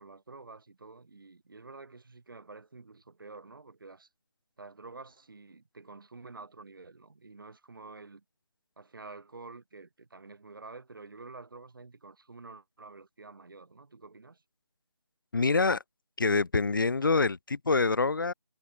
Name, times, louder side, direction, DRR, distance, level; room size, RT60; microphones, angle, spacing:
voice 1, 0.0-4.1 4.6-8.2 8.8-14.4, right 3 dB, 50° right, 7.5 m, -49 dB
voice 2, 15.3-15.8 16.2-18.3, left 4 dB, 45° left, 1.0 m, -26 dB
figure-of-eight pair, 175°, 14 cm